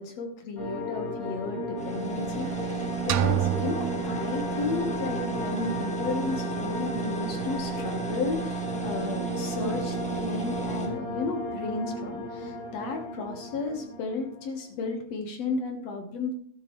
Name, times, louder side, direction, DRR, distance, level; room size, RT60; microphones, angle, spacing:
voice 1, 0.0-16.3, left 3 dB, 65° left, 4 dB, 2.3 m, -33 dB
sound 1, 0.6-14.6, left 1 dB, 50° left, 4.9 m, -35 dB
sound 2, 1.8-10.9, right 5 dB, 5° left, 0.9 m, -33 dB
sound 3, 3.1-5.0, right 11 dB, 85° right, 2.1 m, -29 dB
13.0 x 12.0 x 3.1 m, 0.63 s
omnidirectional pair, 3.3 m